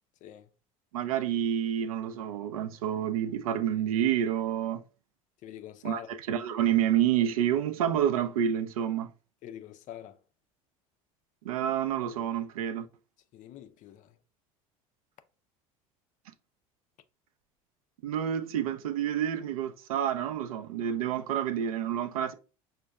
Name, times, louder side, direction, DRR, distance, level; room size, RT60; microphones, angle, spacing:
voice 1, 0.9-4.8 5.8-9.1 11.4-12.9 18.0-22.3, right 10 dB, 80° right, 0.4 m, -28 dB
voice 2, 5.4-6.1 9.4-10.2 13.3-14.1, left 11 dB, 45° left, 0.4 m, -44 dB
5.2 x 2.2 x 2.2 m
hypercardioid pair, 75°, 18 cm